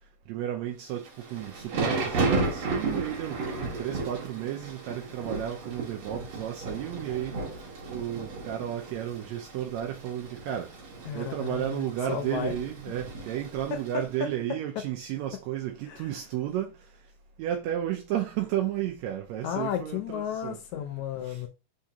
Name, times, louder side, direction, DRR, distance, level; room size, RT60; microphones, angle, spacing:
voice 1, 0.3-7.4 7.9-10.7 11.1-16.8 17.4-20.6 21.2-21.4, right 11 dB, 80° right, 1.6 m, -33 dB
Thunder / Rain, 1.0-14.1, right 3 dB, 55° right, 1.8 m, -34 dB
voice 2, 11.1-12.5 13.7-14.3 15.9-16.1 19.4-21.5, left 9 dB, 80° left, 1.7 m, -33 dB
4.7 x 3.6 x 2.7 m
omnidirectional pair, 3.6 m